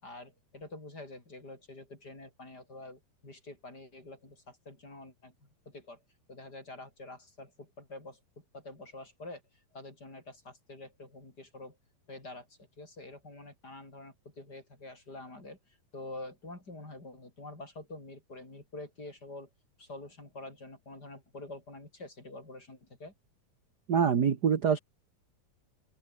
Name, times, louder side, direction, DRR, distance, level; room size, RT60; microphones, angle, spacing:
voice 1, 0.0-6.0 6.3-11.8 12.1-19.5 19.8-23.1, left 2 dB, 25° left, 7.0 m, -47 dB
voice 2, 23.9-24.8, right 7 dB, 45° right, 1.3 m, -25 dB
open air
omnidirectional pair, 3.9 m